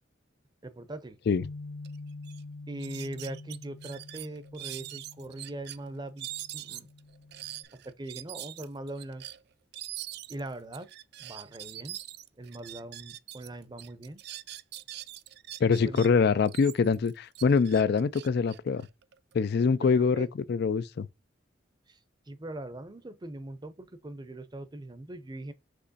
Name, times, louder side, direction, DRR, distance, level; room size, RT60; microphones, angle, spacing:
voice 1, 0.6-1.2 2.7-6.3 6.5-6.9 7.7-9.2 10.3-10.9 11.2-12.0 12.4-14.2 15.8-16.1 19.9-20.3 21.9-22.0 22.3-25.5, right 1 dB, 20° right, 0.6 m, -41 dB
Bass guitar, 1.4-7.7, left 3 dB, 80° left, 0.7 m, -46 dB
sound 1, 1.8-2.0 2.2-2.4 2.8-5.8 6.2-13.5 13.8-16.1 16.5-19.3, right 14 dB, 60° right, 0.4 m, -43 dB
voice 2, 15.6-18.9 19.3-21.1, left 5 dB, 60° left, 0.4 m, -24 dB
6.2 x 3.0 x 2.7 m
head